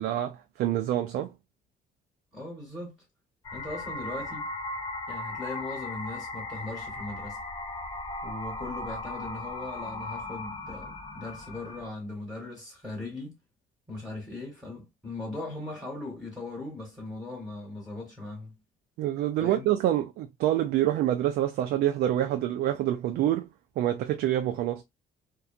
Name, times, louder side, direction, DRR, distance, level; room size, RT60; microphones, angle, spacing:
voice 1, 0.0-1.3 19.0-23.5 23.8-24.8, right 12 dB, 70° right, 0.4 m, -26 dB
voice 2, 2.3-3.0 3.5-4.5 5.1-7.4 8.2-13.4 13.9-18.5 19.4-19.7, left 2 dB, 5° right, 1.1 m, -39 dB
sound 1, 3.4-11.9, left 2 dB, 25° left, 0.8 m, -37 dB
2.6 x 2.3 x 2.4 m
cardioid pair, 110°, 17 cm